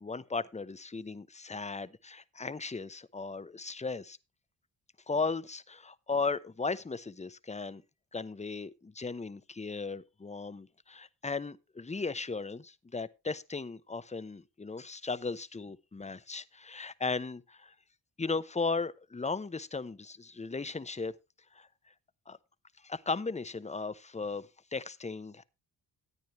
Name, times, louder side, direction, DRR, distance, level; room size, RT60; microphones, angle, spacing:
voice 1, 0.0-4.2 5.1-7.8 8.1-17.7 18.2-21.1 21.5-21.7 22.3-22.4 22.8-25.4, left 4 dB, 15° left, 0.8 m, -36 dB
13.5 x 9.2 x 3.1 m
supercardioid pair, 50°, 42 cm